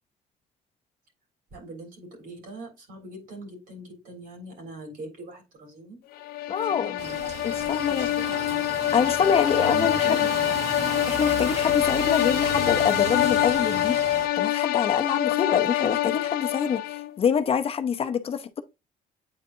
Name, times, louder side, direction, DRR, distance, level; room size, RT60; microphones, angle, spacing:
voice 1, 1.5-6.0 6.8-7.2 7.9-8.7 9.0-10.3, right 2 dB, 65° right, 3.6 m, -41 dB
sound 1, 6.2-17.2, left 14 dB, 75° left, 0.5 m, -25 dB
voice 2, 6.5-6.9 7.4-8.1 8.9-10.2 11.1-18.6, left 7 dB, 40° left, 0.7 m, -26 dB
sound 2, 7.0-14.3, right 5 dB, 45° right, 1.0 m, -35 dB
8.8 x 4.1 x 2.7 m
cardioid pair, 135°, 16 cm